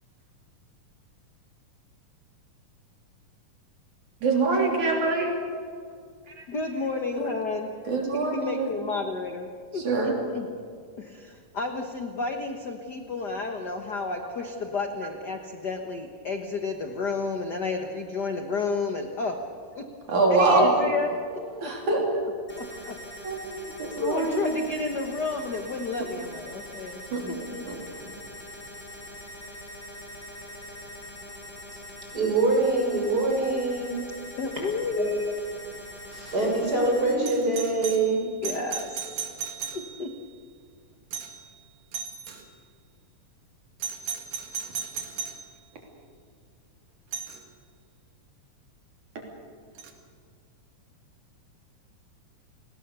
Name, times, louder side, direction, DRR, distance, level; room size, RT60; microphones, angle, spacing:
voice 1, 4.2-5.4 6.4-6.5 7.2-7.3 7.9-8.7 9.7-10.1 20.1-20.7 21.6-22.0 23.2-24.7 27.1-27.3 27.7-28.1, right 3 dB, 60° right, 0 dB, 4.5 m, -25 dB
voice 2, 6.5-7.7 8.1-10.5 11.0-19.4 19.7-19.8 20.3-21.7 22.6-23.0 23.9-27.6 34.4-35.6 38.4-39.2 39.7-40.1, left 3 dB, 60° left, 4 dB, 1.0 m, -31 dB
sound 1, 22.5-37.1, left 1 dB, 30° left, 4.8 m, -43 dB
voice 3, 32.1-33.9 35.0-35.1 36.1-38.2, right 2 dB, 25° right, -1 dB, 6.5 m, -24 dB
Doorbell, 37.2-40.2 41.1-41.5 41.9-42.4 43.8-45.5 47.1-47.4 49.8-49.9, right 7 dB, 85° right, 3.6 m, -36 dB
29.5 x 19.5 x 6.9 m, 2.1 s
omnidirectional pair, 3.9 m